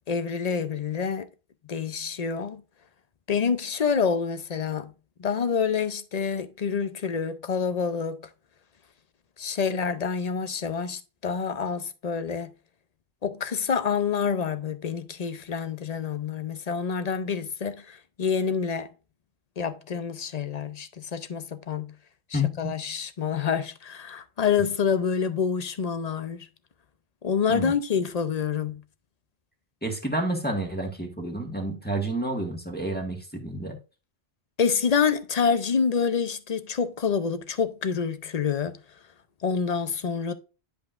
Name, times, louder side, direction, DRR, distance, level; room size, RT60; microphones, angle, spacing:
voice 1, 0.1-1.3 1.7-2.6 3.3-4.9 5.2-8.2 9.4-12.5 13.2-18.9 19.6-21.9 22.3-26.5 27.2-28.8 34.6-38.8 39.4-40.3, left 6 dB, 45° left, 0.7 m, -27 dB
voice 2, 22.3-22.7 27.5-27.7 29.8-33.8, equal, 10° left, 1.6 m, -29 dB
10.5 x 5.2 x 2.5 m
omnidirectional pair, 1.1 m